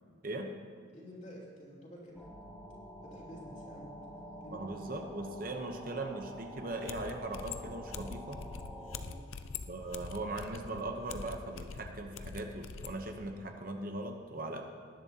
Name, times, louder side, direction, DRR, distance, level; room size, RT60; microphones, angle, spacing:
voice 1, 0.9-2.3 3.0-4.0 4.4-4.7 9.0-9.3, equal, 40° left, -4 dB, 3.3 m, -50 dB
sound 1, 2.1-9.0, equal, 5° left, 3.3 m, -48 dB
voice 2, 4.5-8.4 9.6-14.6, right 2 dB, 45° right, 4 dB, 0.8 m, -39 dB
sound 2, 6.9-13.0, left 5 dB, 80° left, 0.6 m, -44 dB
18.5 x 11.0 x 2.8 m, 2.2 s
head